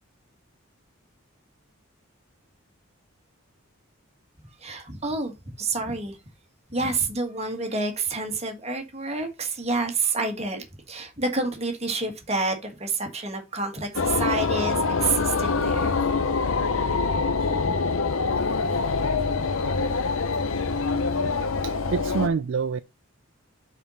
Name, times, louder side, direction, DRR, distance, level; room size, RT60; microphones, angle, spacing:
voice 1, 4.6-6.2 6.7-16.0, right 3 dB, 30° right, 1.8 m, -28 dB
sound 1, 13.9-22.3, left 4 dB, 75° left, 0.8 m, -25 dB
voice 2, 21.6-22.8, right 5 dB, 60° right, 0.4 m, -27 dB
5.7 x 4.6 x 5.5 m
head